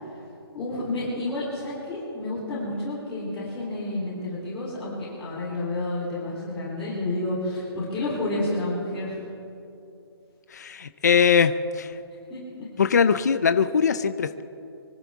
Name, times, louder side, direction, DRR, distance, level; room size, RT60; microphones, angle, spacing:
voice 1, 0.5-9.1 12.3-12.4, left 2 dB, 10° left, -13 dB, 3.5 m, -30 dB
voice 2, 10.5-11.9 12.8-14.4, left 6 dB, 40° left, 11 dB, 0.5 m, -21 dB
25.0 x 14.0 x 3.6 m, 2.7 s
hypercardioid pair, 175°, 13 cm